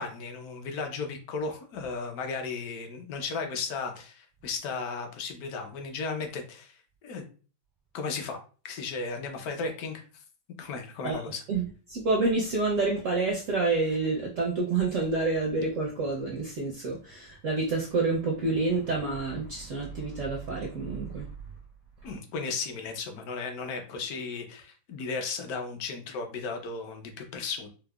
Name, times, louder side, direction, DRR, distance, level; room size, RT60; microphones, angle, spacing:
voice 1, 0.0-6.8 7.0-7.2 7.9-8.4 8.6-10.1 10.6-11.4 22.0-27.7, left 4 dB, 70° left, 0.9 m, -35 dB
voice 2, 11.5-21.3, right 3 dB, 75° right, 0.7 m, -28 dB
4.6 x 2.0 x 2.3 m
omnidirectional pair, 2.1 m